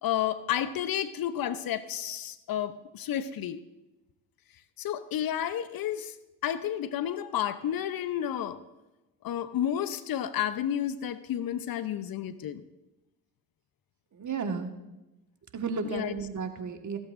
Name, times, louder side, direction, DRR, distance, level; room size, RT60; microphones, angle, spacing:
voice 1, 0.0-3.6 4.8-6.1 6.4-8.6 9.2-12.6 15.8-16.1, left 10 dB, 55° left, 13 dB, 0.8 m, -31 dB
voice 2, 14.1-14.7 15.5-17.0, right 5 dB, 45° right, 6 dB, 1.7 m, -33 dB
15.5 x 14.0 x 2.6 m, 1.0 s
hypercardioid pair, 50°, 42 cm